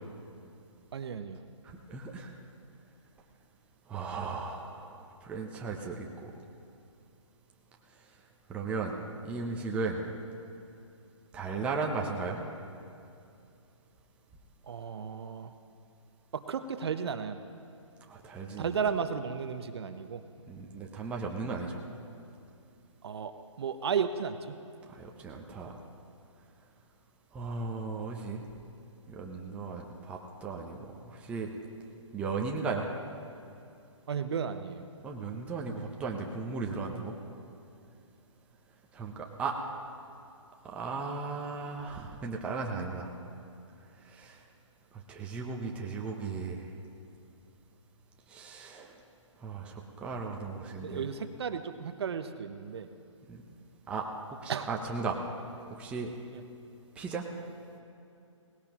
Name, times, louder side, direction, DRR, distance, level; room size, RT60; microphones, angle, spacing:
voice 1, 0.9-1.4 14.7-15.5 16.3-17.4 18.6-20.2 23.0-23.3 23.6-24.6 34.1-34.9 50.8-52.9 54.5-54.7, right 6 dB, 55° right, 10 dB, 0.7 m, -34 dB
voice 2, 1.6-2.3 3.9-6.3 8.5-10.0 11.3-12.4 18.1-18.7 20.5-21.8 24.9-25.8 27.3-28.5 29.1-30.8 31.0-31.5 32.1-32.9 35.0-37.1 38.9-39.6 40.6-43.1 44.0-44.4 45.1-46.7 48.3-49.0 49.4-51.0 53.3-53.4 53.9-55.2 55.7-56.1 57.0-57.3, right 4 dB, 5° right, 0 dB, 0.7 m, -36 dB
18.5 x 17.5 x 3.0 m, 2.6 s
hypercardioid pair, 155°, 17 cm